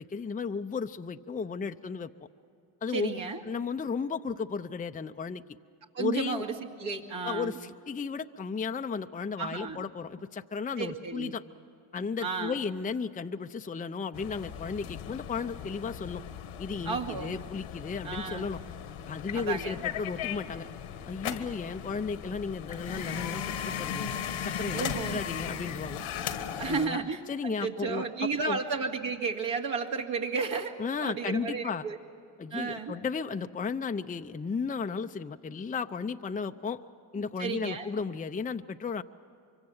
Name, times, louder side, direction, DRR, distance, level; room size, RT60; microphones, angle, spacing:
voice 1, 0.0-2.1 2.8-5.4 6.0-6.4 7.2-11.4 11.9-16.2 16.6-18.6 19.1-20.7 21.1-24.1 24.4-26.0 26.5-28.1 28.4-28.6 30.8-31.9 32.4-36.8 37.1-39.0, left 5 dB, 15° left, 8 dB, 0.6 m, -34 dB
voice 2, 2.9-3.4 5.9-6.5 6.8-7.5 9.4-9.8 10.8-11.4 12.2-12.6 16.8-17.4 18.0-18.4 19.3-19.8 24.7-25.2 26.6-30.7 31.0-32.0 32.5-32.9 37.4-37.9, right 5 dB, 60° right, 1 dB, 2.5 m, -33 dB
sound 1, 14.1-26.9, left 8 dB, 75° left, 1.5 m, -37 dB
24.5 x 24.0 x 7.3 m, 2.7 s
supercardioid pair, 75°, 50 cm